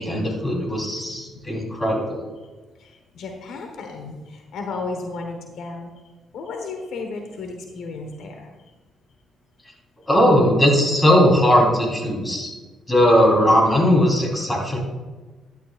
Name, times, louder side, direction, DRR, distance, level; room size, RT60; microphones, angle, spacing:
voice 1, 0.0-2.2 10.1-12.5 12.9-14.8, equal, 15° left, -1 dB, 3.8 m, -18 dB
voice 2, 2.8-5.9 6.3-8.5, left 3 dB, 75° left, 4 dB, 1.3 m, -33 dB
13.0 x 11.5 x 2.5 m, 1.3 s
cardioid pair, 90°, 0 cm